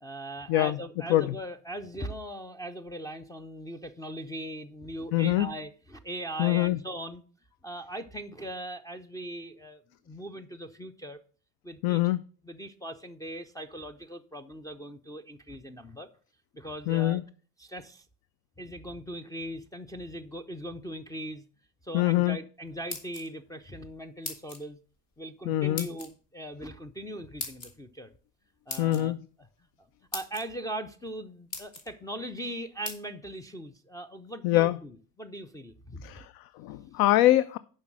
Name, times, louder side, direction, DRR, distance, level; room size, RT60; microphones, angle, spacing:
voice 1, 0.0-7.2 7.6-11.2 11.6-12.0 12.4-16.1 16.5-17.2 17.6-18.1 18.6-21.4 21.8-24.8 25.2-28.1 28.7-29.5 30.1-36.2, right 1 dB, 10° left, 0.4 m, -40 dB
voice 2, 5.1-5.5 6.4-6.8 11.8-12.2 16.9-17.2 21.9-22.4 25.5-25.9 28.8-29.2 34.4-34.8 36.0-37.6, left 15 dB, 70° left, 0.5 m, -24 dB
sound 1, 22.7-23.5 24.2-24.6 25.8-26.1 27.4-27.7 28.7-29.0 29.7-29.8 30.1-30.4 31.1-31.2 31.5-31.9 32.8-33.0, left 3 dB, 40° left, 1.9 m, -38 dB
7.3 x 5.4 x 6.0 m
cardioid pair, 130°, 39 cm